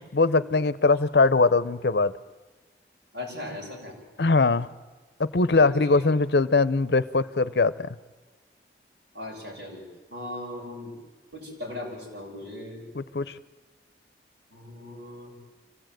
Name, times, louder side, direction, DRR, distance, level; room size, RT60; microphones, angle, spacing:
voice 1, 0.1-2.1 4.2-4.7 5.2-7.9 12.9-13.3, left 3 dB, 70° left, 16 dB, 0.7 m, -21 dB
voice 2, 3.1-4.0 5.5-6.1 9.1-9.8 10.1-11.0 11.3-12.8 14.5-15.3, left 1 dB, 80° right, -2 dB, 7.3 m, -38 dB
25.0 x 16.5 x 9.2 m, 1.2 s
head